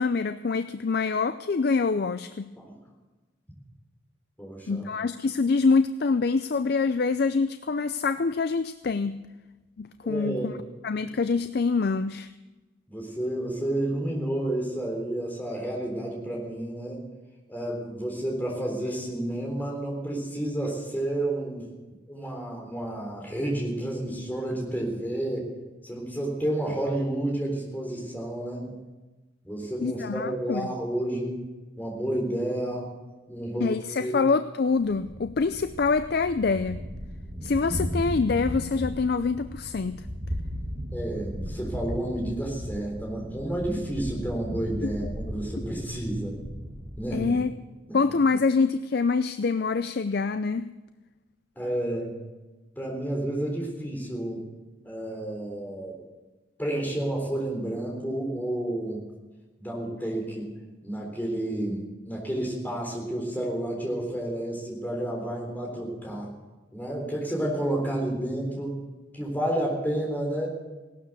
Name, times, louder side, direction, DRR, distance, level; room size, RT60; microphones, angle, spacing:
voice 1, 0.0-2.5 4.7-9.2 9.8-10.6 10.8-12.3 29.8-30.7 33.6-36.8 37.4-40.0 44.8-44.9 47.1-47.5 47.9-50.7, left 4 dB, 50° left, 11 dB, 0.4 m, -25 dB
voice 2, 4.4-4.9 10.0-10.6 12.9-17.0 17.5-21.7 22.1-25.5 25.8-28.7 29.4-31.4 31.8-32.9 33.3-33.7 34.0-34.2 40.9-46.4 47.0-47.3 47.9-48.0 51.6-52.1 52.8-54.4 54.8-56.0 56.6-59.0 59.6-60.5 60.8-66.3 66.7-68.8 69.1-70.5, right 1 dB, 10° left, -1 dB, 3.8 m, -30 dB
Thunder, 34.8-47.5, equal, 30° right, 1.6 m, -36 dB
17.5 x 12.5 x 6.8 m, 1.2 s
head